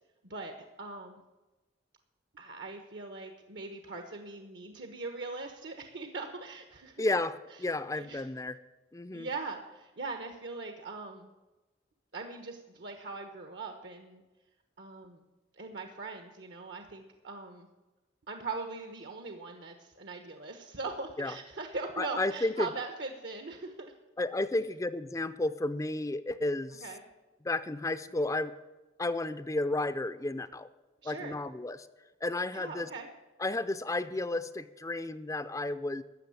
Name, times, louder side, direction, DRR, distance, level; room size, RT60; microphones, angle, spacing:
voice 1, 0.2-1.2 2.3-7.0 8.0-8.2 9.1-11.3 12.1-14.2 14.8-15.2 15.6-17.7 18.3-23.9 26.8-27.0 31.0-31.4 32.5-33.1, right 3 dB, 65° right, 5 dB, 1.1 m, -41 dB
voice 2, 7.0-8.6 8.9-9.3 21.2-21.3 22.0-22.7 24.2-26.8 27.4-28.5 29.0-30.7 31.0-31.9 32.2-32.9 33.4-36.0, left 2 dB, 15° left, 13 dB, 0.4 m, -32 dB
14.0 x 6.5 x 9.5 m, 1.1 s
head